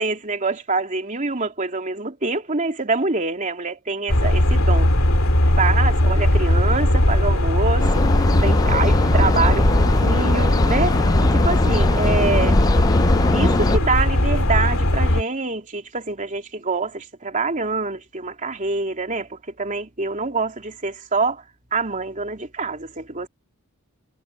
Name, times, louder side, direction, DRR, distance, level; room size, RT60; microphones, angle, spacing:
voice 1, 0.0-4.9 5.5-12.6 13.3-21.4 21.7-23.3, right 3 dB, 35° right, 3.2 m, -25 dB
sound 1, 4.1-15.2, left 1 dB, 70° left, 3.0 m, -19 dB
sound 2, 7.8-13.8, left 2 dB, 15° left, 0.3 m, -21 dB
head